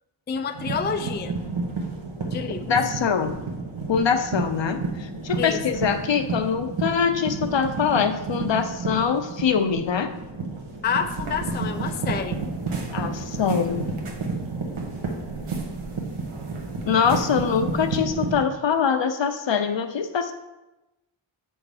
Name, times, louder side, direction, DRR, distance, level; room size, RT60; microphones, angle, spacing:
voice 1, 0.3-1.3 2.3-2.7 5.4-5.6 10.8-12.4, left 6 dB, 25° left, 8 dB, 0.3 m, -28 dB
sound 1, 0.5-18.4, right 3 dB, 70° right, 1.2 m, -31 dB
voice 2, 2.7-3.4 3.9-10.1 12.9-13.9 16.9-20.3, left 6 dB, 60° left, 8 dB, 0.6 m, -23 dB
sound 2, 11.0-18.0, right 3 dB, 90° right, 1.0 m, -42 dB
6.9 x 3.6 x 4.8 m, 1.0 s
wide cardioid pair, 70°, 49 cm